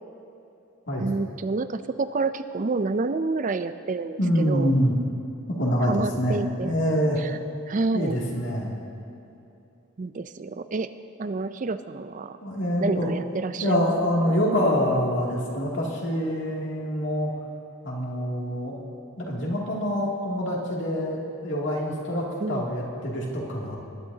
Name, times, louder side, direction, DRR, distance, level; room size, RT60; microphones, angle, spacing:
voice 1, 1.0-4.7 5.9-6.7 7.2-7.4 7.7-8.2 10.0-10.9 11.2-12.4 12.8-13.9 14.2-14.4 22.4-22.6, right 3 dB, 40° right, 11 dB, 0.4 m, -28 dB
voice 2, 4.2-4.9 5.6-7.2 7.9-8.8 12.4-13.1 13.6-17.3 17.8-18.8 19.2-23.8, equal, 60° left, -3 dB, 2.6 m, -25 dB
20.5 x 11.5 x 2.8 m, 2.9 s
head